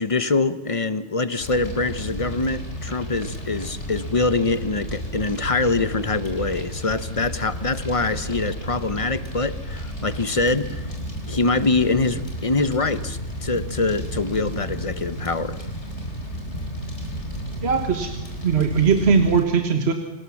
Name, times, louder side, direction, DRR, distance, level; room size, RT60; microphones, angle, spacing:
voice 1, 0.0-10.9 11.2-15.6, left 3 dB, 30° left, 14 dB, 0.9 m, -24 dB
Fire, 1.4-19.4, equal, 75° left, 4.4 m, -33 dB
voice 2, 17.6-18.1 18.4-19.9, right 5 dB, 60° right, 6 dB, 1.7 m, -19 dB
26.0 x 19.0 x 7.2 m, 1.0 s
omnidirectional pair, 1.2 m